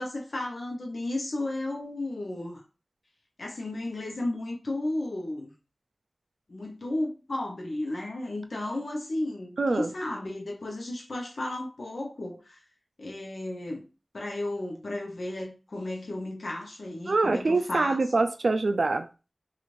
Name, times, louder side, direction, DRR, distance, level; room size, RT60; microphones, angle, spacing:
voice 1, 0.0-2.6 3.4-5.5 6.5-12.6 13.0-13.9 14.1-18.0, left 1 dB, 80° left, 0.7 m, -33 dB
voice 2, 9.6-9.9 17.1-19.1, right 3 dB, 90° right, 0.3 m, -24 dB
2.5 x 2.4 x 3.1 m
wide cardioid pair, 60°, 0 cm